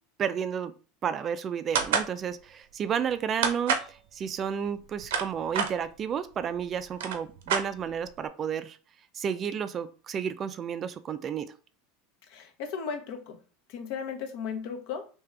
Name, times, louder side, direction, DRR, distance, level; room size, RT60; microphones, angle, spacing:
voice 1, 0.2-0.7 1.0-8.8 9.1-11.5, right 7 dB, 35° right, 12 dB, 0.3 m, -32 dB
sound 1, 1.7-2.1 3.4-3.9 4.8-5.7 6.5-6.6 6.9-8.1, right 6 dB, 85° right, 0.7 m, -27 dB
voice 2, 12.3-13.4 13.7-15.1, left 6 dB, 65° left, 5 dB, 0.8 m, -36 dB
3.5 x 2.8 x 3.3 m, 0.37 s
supercardioid pair, 120°, 0 cm